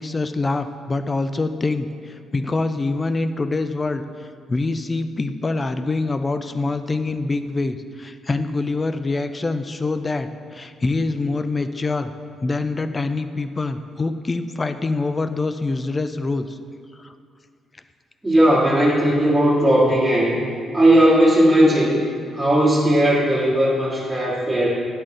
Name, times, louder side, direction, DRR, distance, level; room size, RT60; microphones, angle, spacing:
voice 1, 0.0-4.0 4.5-12.1 12.4-16.6 17.0-17.1, left 3 dB, 25° left, 10 dB, 0.4 m, -25 dB
voice 2, 18.2-20.4 20.7-22.0 22.3-24.7, right 1 dB, 5° right, -10 dB, 1.7 m, -17 dB
10.0 x 4.0 x 3.8 m, 2.2 s
cardioid pair, 90°, 0 cm